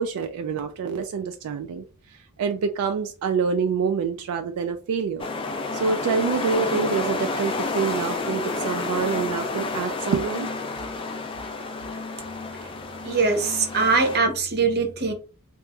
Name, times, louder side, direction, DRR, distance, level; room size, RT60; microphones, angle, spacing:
voice 1, 0.0-5.3 5.7-10.5, right 5 dB, 80° right, 0.3 m, -26 dB
sound 1, 5.2-14.2, left 3 dB, 25° left, 0.3 m, -30 dB
voice 2, 13.0-15.1, right 4 dB, 45° right, 0.7 m, -22 dB
2.9 x 2.5 x 2.2 m
head